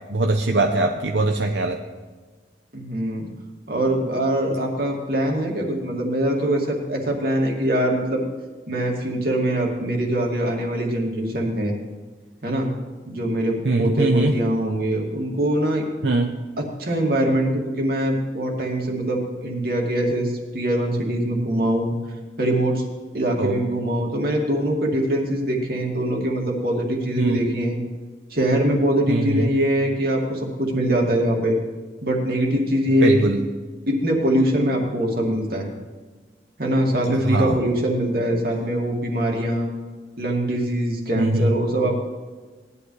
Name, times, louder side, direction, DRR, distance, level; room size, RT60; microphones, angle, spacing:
voice 1, 0.1-1.8 13.6-14.4 16.0-16.3 23.4-23.6 27.2-27.4 29.1-29.5 33.0-33.4 37.1-37.6 41.2-41.5, right 2 dB, 80° right, 3 dB, 0.8 m, -21 dB
voice 2, 2.7-3.3 3.7-8.2 8.7-11.8 12.4-12.7 13.1-15.9 16.6-21.9 22.4-22.9 23.1-27.8 28.3-31.6 32.0-33.1 33.9-35.7 36.6-39.7 40.2-42.0, right 1 dB, 55° right, 0 dB, 2.3 m, -23 dB
18.0 x 11.0 x 3.3 m, 1.4 s
head